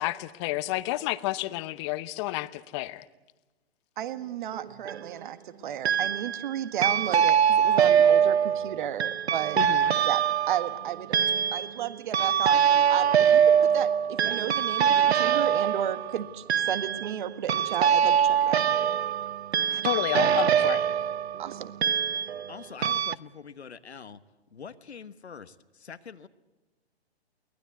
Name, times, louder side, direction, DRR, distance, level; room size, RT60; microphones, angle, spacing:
voice 1, 0.0-3.1 9.6-10.0 19.8-20.8, left 18 dB, 25° left, 16 dB, 0.8 m, -30 dB
voice 2, 4.0-9.6 10.0-11.2 11.5-18.6 19.7-19.8 21.4-21.9, right 10 dB, 50° right, 12 dB, 1.7 m, -33 dB
sound 1, 4.5-5.1 5.8-6.5 6.8-22.5 22.8-23.1, right 8 dB, 80° right, 0.7 m, -23 dB
voice 3, 22.5-24.2 24.5-26.3, left 6 dB, 85° left, 12 dB, 1.3 m, -44 dB
23.5 x 19.0 x 8.2 m, 1.1 s
hypercardioid pair, 135°, 32 cm